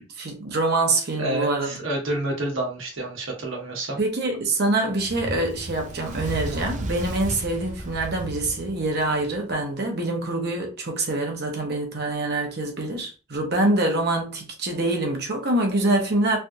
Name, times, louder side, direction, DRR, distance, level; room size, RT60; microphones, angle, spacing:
voice 1, 0.0-1.7 4.0-16.4, right 2 dB, 55° right, 0.9 m, -25 dB
voice 2, 1.2-4.0, right 1 dB, 85° right, 1.2 m, -29 dB
Fire, 5.0-9.5, right 1 dB, 40° right, 0.5 m, -34 dB
3.3 x 2.4 x 2.7 m
head